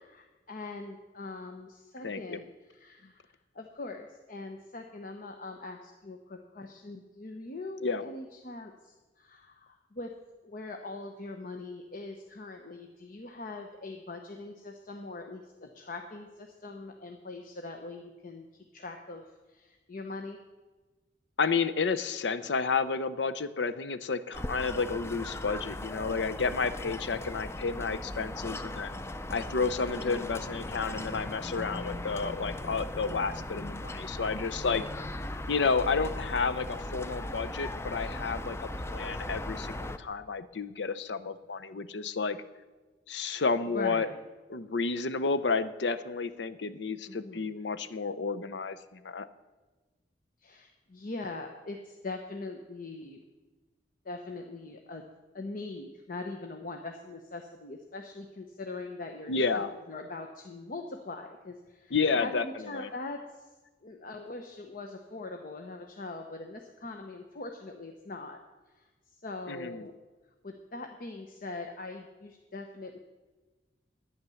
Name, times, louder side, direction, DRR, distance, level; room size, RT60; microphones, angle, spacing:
voice 1, 0.0-10.1 10.4-20.4 29.9-30.3 43.7-44.2 47.1-47.5 50.4-53.2 54.0-55.0 55.3-63.4 63.8-68.4 68.7-69.9 70.4-73.0, left 3 dB, 50° left, 4 dB, 0.8 m, -42 dB
voice 2, 2.0-2.4 7.8-8.0 21.4-28.9 29.3-35.1 35.5-42.4 43.1-44.1 44.5-49.3 59.3-59.7 61.9-62.9 69.5-69.9, left 4 dB, 80° left, 13 dB, 0.7 m, -31 dB
sound 1, 24.3-40.0, left 1 dB, 15° left, 0.5 m, -38 dB
11.0 x 9.6 x 7.0 m, 1.3 s
head